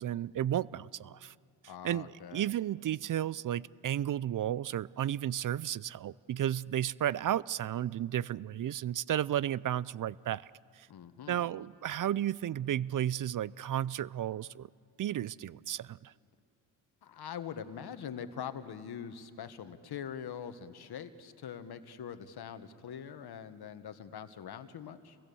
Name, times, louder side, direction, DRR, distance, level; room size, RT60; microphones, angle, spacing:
voice 1, 0.0-1.3 1.6-10.5 10.7-10.9 11.3-14.7 15.0-16.1, right 11 dB, 50° right, 21 dB, 0.5 m, -33 dB
voice 2, 1.7-2.5 10.9-11.5 17.0-25.2, left 8 dB, 65° left, 10 dB, 1.6 m, -43 dB
29.0 x 22.5 x 7.1 m, 2.3 s
cardioid pair, 65°, 41 cm